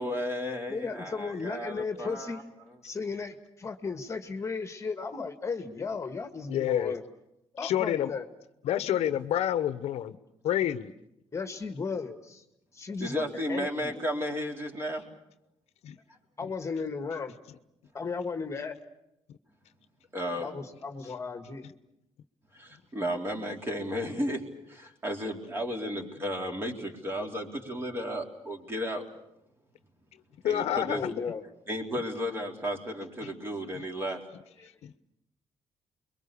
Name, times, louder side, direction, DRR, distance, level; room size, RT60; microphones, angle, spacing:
voice 1, 0.0-2.4 13.0-15.0 20.1-20.5 22.5-24.4 24.7-29.1 30.4-31.1 31.7-34.2, equal, 20° right, 2 dB, 3.8 m, -33 dB
voice 2, 0.7-2.5 2.8-7.0 7.5-8.3 11.3-12.4 12.7-14.0 16.4-17.3 17.9-18.8 20.4-21.7 30.9-31.4 34.6-34.7, left 4 dB, 25° left, 7 dB, 1.7 m, -35 dB
voice 3, 6.5-6.9 7.6-8.1 8.6-10.2 10.4-10.9 15.8-16.0 30.4-31.1 33.2-33.3 33.8-33.9 34.8-34.9, left 11 dB, 80° left, 12 dB, 1.0 m, -28 dB
29.5 x 22.5 x 7.0 m, 0.84 s
cardioid pair, 140°, 11 cm